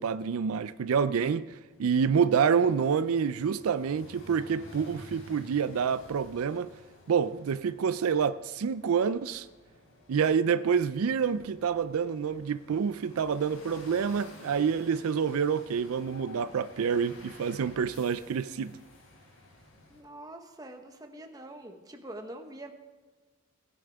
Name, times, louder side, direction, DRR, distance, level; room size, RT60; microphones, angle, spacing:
voice 1, 0.0-6.7 7.1-9.5 10.1-18.8, right 6 dB, 90° right, 0.4 m, -27 dB
sound 1, 1.7-20.0, left 1 dB, 90° left, 3.7 m, -53 dB
voice 2, 19.9-22.7, right 1 dB, 20° right, 1.1 m, -44 dB
18.5 x 10.0 x 3.5 m
head